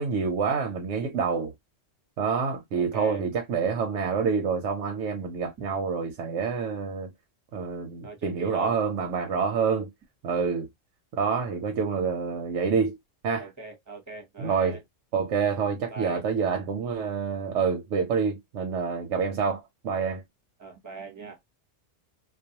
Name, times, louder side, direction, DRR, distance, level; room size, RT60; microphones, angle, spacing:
voice 1, 0.0-1.5 2.2-7.1 7.5-9.9 10.2-10.7 11.1-13.0 13.2-13.5 14.4-14.8 15.1-20.2, right 5 dB, 90° right, 0.9 m, -27 dB
voice 2, 2.7-3.2 8.0-8.8 13.4-14.8 15.9-16.3 20.6-21.4, right 4 dB, 20° right, 0.6 m, -40 dB
2.3 x 2.2 x 2.7 m
omnidirectional pair, 1.2 m